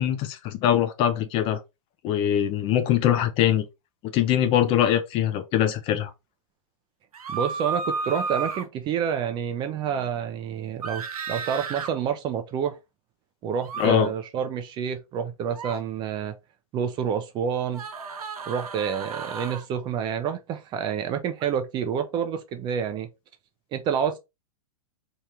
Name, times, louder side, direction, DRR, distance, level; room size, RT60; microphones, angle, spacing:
voice 1, 0.0-1.6 2.0-3.7 4.1-6.1 13.8-14.1, left 10 dB, 30° left, 0.4 m, -22 dB
sound 1, 7.1-8.7 10.8-11.9 13.6-13.9 15.5-15.8 17.7-19.6 21.4-21.5, right 4 dB, 90° right, 0.6 m, -32 dB
voice 2, 7.3-12.8 13.4-16.3 16.7-17.8 18.5-23.1 23.7-24.2, right 8 dB, 25° right, 0.4 m, -28 dB
2.9 x 2.4 x 3.2 m
hypercardioid pair, 125°, 18 cm